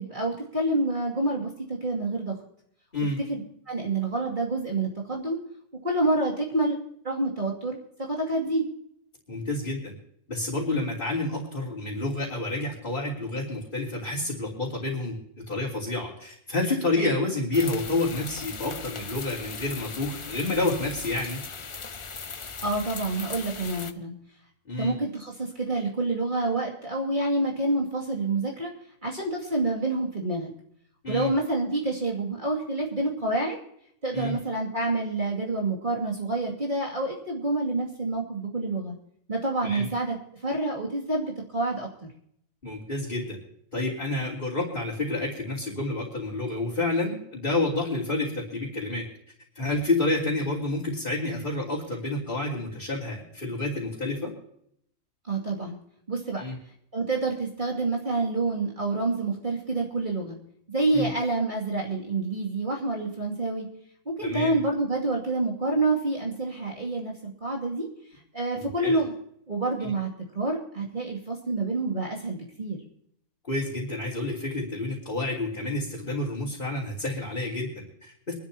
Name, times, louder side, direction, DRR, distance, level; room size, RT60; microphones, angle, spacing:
voice 1, 0.0-2.4 3.3-5.4 5.8-6.8 7.0-8.7 22.6-24.1 24.8-28.7 29.0-30.5 31.1-33.6 34.0-38.9 39.3-41.9 55.3-55.8 56.1-56.4 56.9-60.4 60.7-63.7 64.1-67.9 68.3-69.1 69.5-70.1 70.3-72.8, right 2 dB, 35° right, -2 dB, 2.6 m, -28 dB
voice 2, 9.3-9.9 10.3-15.2 15.5-21.4 24.7-24.9 31.0-31.3 34.1-34.4 39.6-39.9 42.6-43.4 43.7-49.1 49.6-54.3 56.4-56.6 60.9-61.1 64.2-64.6 68.6-69.0 69.8-69.9 73.5-78.3, left 2 dB, 35° left, -6 dB, 3.6 m, -29 dB
sound 1, 17.5-23.9, left 5 dB, 50° left, 0.3 m, -38 dB
25.0 x 12.5 x 2.9 m, 0.70 s
omnidirectional pair, 1.5 m